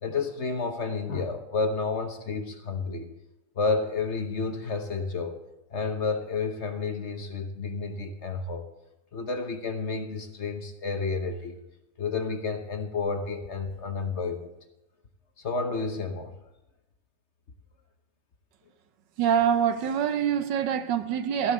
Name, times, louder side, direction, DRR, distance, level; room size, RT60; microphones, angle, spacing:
voice 1, 0.0-3.1 3.6-5.4 5.7-8.6 9.1-11.6 12.0-14.5 15.4-16.3, left 4 dB, 45° left, 6 dB, 1.1 m, -30 dB
voice 2, 19.2-21.5, right 8 dB, 85° right, 10 dB, 1.5 m, -25 dB
15.5 x 5.5 x 8.1 m, 0.92 s
omnidirectional pair, 1.9 m